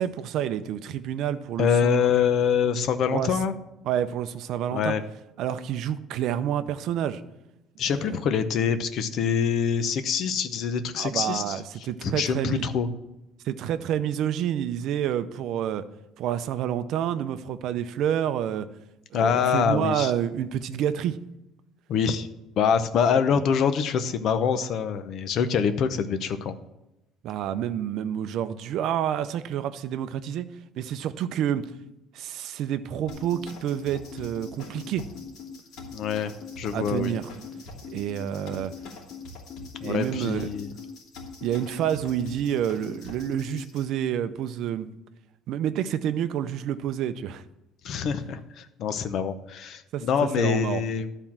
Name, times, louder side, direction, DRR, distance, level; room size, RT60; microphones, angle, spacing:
voice 1, 0.0-2.3 3.1-3.3 3.8-5.0 5.4-7.2 7.9-8.1 11.0-12.7 13.4-15.9 16.2-18.7 19.1-21.2 23.0-23.2 27.2-31.7 32.1-35.1 36.7-37.2 37.9-38.7 39.8-40.5 41.4-44.9 45.5-47.4 49.9-50.8, right 10 dB, 50° right, 11 dB, 0.5 m, -28 dB
voice 2, 1.6-3.5 4.7-5.0 7.8-11.6 12.0-12.9 19.1-20.1 21.9-22.3 22.6-26.5 35.9-36.3 36.6-37.2 39.8-40.7 47.8-51.1, left 7 dB, 45° left, 10 dB, 0.7 m, -25 dB
sound 1, 33.1-43.8, left 4 dB, 60° left, 2.9 m, -42 dB
12.0 x 4.5 x 7.3 m, 0.92 s
cardioid pair, 175°, 0 cm